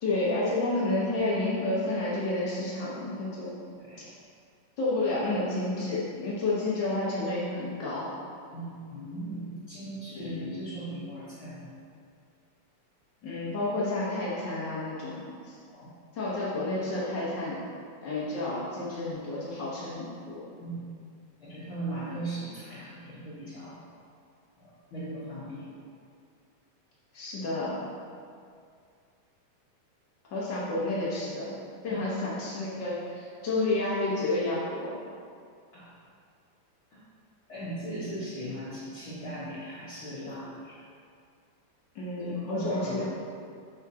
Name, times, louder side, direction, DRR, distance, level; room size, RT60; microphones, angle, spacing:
voice 1, 0.0-3.5 4.8-8.1 10.1-10.5 13.2-15.5 16.1-17.6 18.0-20.4 27.1-27.9 30.3-31.6 31.8-34.9 41.9-43.0, left 2 dB, 90° left, -8 dB, 0.9 m, -30 dB
voice 2, 3.7-4.1 8.5-11.7 15.7-15.9 20.6-20.8 21.4-23.8 24.6-25.7 31.9-32.1 35.7-35.9 36.9-37.0 37.5-40.8 42.2-43.0, right 1 dB, 50° left, -11 dB, 1.7 m, -38 dB
7.9 x 6.1 x 2.8 m, 2.3 s
omnidirectional pair, 3.6 m